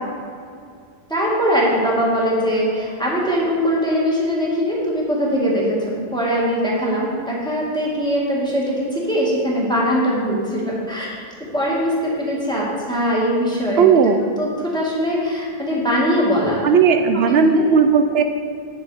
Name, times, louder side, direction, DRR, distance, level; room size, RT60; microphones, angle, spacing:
voice 1, 1.1-11.1 11.5-14.1 14.4-16.6 17.1-17.6, equal, 5° left, -6 dB, 2.1 m, -21 dB
voice 2, 13.8-14.2 16.6-18.2, right 6 dB, 75° right, 7 dB, 0.8 m, -15 dB
9.1 x 7.2 x 5.0 m, 2.2 s
omnidirectional pair, 1.1 m